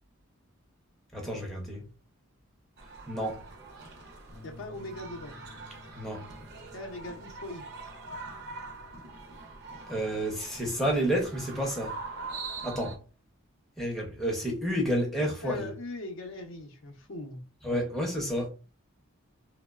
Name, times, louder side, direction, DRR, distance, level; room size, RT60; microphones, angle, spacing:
voice 1, 1.1-1.9 3.1-3.4 6.0-6.2 9.9-12.0 12.6-13.0 13.8-15.7 17.6-18.5, equal, ahead, 0.5 m, -30 dB
sound 1, 2.8-13.0, right 3 dB, 50° right, 0.5 m, -43 dB
Bass guitar, 4.3-10.6, left 3 dB, 35° left, 0.8 m, -55 dB
voice 2, 4.4-5.4 6.7-7.6 15.4-17.4, left 1 dB, 55° left, 0.5 m, -40 dB
2.9 x 2.0 x 2.3 m
head